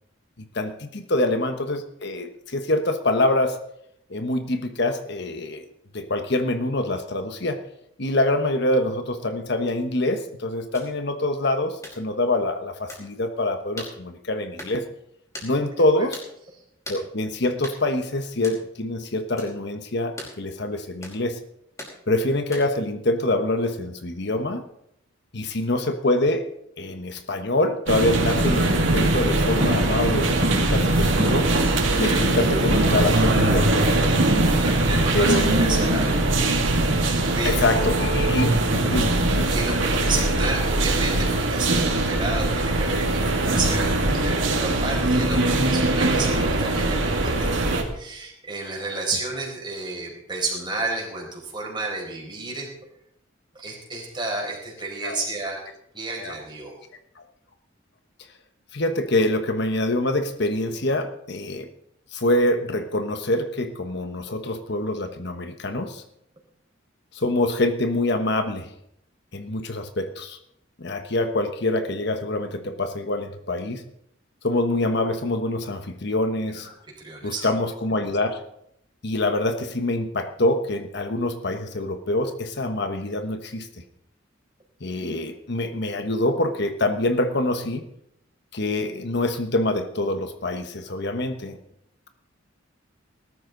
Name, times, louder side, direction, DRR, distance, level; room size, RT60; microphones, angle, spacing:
voice 1, 0.5-3.6 4.1-5.6 5.9-7.6 8.0-14.8 15.4-16.2 16.9-21.4 22.1-24.6 25.3-26.4 26.8-31.5 32.0-34.3 35.1-36.1 37.4-39.5 55.0-55.2 56.2-56.3 57.2-57.3 58.7-61.7 62.1-66.0 67.1-68.7 69.3-70.4 70.8-73.8 74.4-76.7 77.2-78.4 79.0-83.7 84.8-87.8 88.5-91.6, left 1 dB, 55° left, 7 dB, 1.2 m, -25 dB
sound 1, 10.7-10.9 11.8-12.0 12.9-13.1 13.8-14.0 14.6-14.8 15.3-15.5 16.1-16.3 16.8-17.0 17.6-17.8 18.4-18.6 19.4-19.5 20.2-20.4 21.0-21.2 21.8-22.0 22.5-22.8, left 1 dB, 15° left, 5.3 m, -38 dB
sound 2, 27.9-47.8, right 2 dB, 75° right, 2.5 m, -21 dB
voice 2, 31.8-32.2 34.4-36.3 36.8-37.6 39.5-52.7 53.5-55.6 55.9-56.7 76.6-77.5, right 3 dB, 25° right, -1 dB, 4.8 m, -31 dB
20.0 x 13.0 x 4.0 m, 0.75 s
head